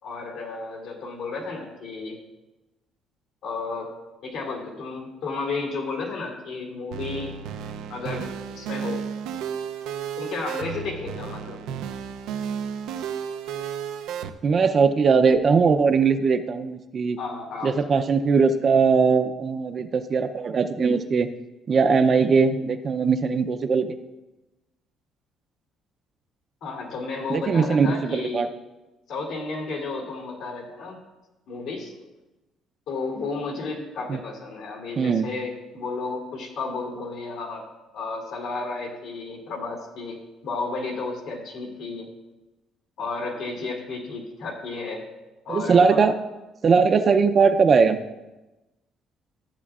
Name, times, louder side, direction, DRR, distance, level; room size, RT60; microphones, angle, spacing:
voice 1, 0.0-2.2 3.4-3.9 4.2-7.3 7.9-9.0 10.2-11.6 17.2-17.8 26.6-28.5 29.1-31.0 31.5-31.9 32.9-37.6 37.9-42.1 43.0-45.0 45.4-46.0, left 3 dB, 75° left, 0 dB, 2.4 m, -32 dB
sound 1, 6.9-14.3, right 8 dB, 85° right, 0.5 m, -33 dB
voice 2, 14.4-17.2 17.6-21.3 21.7-23.9 27.3-28.5 34.1-34.2 35.0-35.3 45.5-46.2 46.6-48.0, right 5 dB, 40° right, 7 dB, 0.5 m, -20 dB
13.5 x 8.1 x 2.4 m, 1.1 s
cardioid pair, 125°, 0 cm